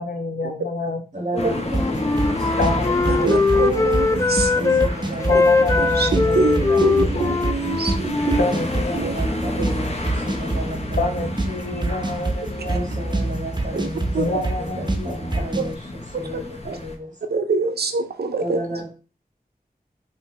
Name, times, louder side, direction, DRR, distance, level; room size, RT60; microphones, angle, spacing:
voice 1, 0.0-1.0 2.6-3.9 5.3-6.9 7.1-7.4 8.4-9.0 11.0-12.9 14.2-15.4, left 3 dB, 80° left, 0.7 m, -28 dB
voice 2, 1.1-2.8 3.0-3.4 4.6-5.3 5.7-6.0 6.2-7.0 8.8-11.3 11.6-11.7 12.6-17.2 18.4-18.9, equal, 50° right, 2.0 m, -33 dB
sound 1, 1.4-17.0, left 2 dB, 40° left, 0.8 m, -32 dB
Wind instrument woodwind instrument, 1.6-4.9 5.2-9.0, left 3 dB, 20° left, 0.4 m, -21 dB
sound 2, 1.7-15.7, right 2 dB, 30° right, 0.6 m, -27 dB
voice 3, 3.1-4.8 5.8-8.5 8.9-9.1 9.6-9.7 13.7-13.9 14.1-14.4 16.7-16.8 17.3-18.6, right 4 dB, 90° right, 0.5 m, -25 dB
5.5 x 2.8 x 3.1 m
wide cardioid pair, 60°, 16 cm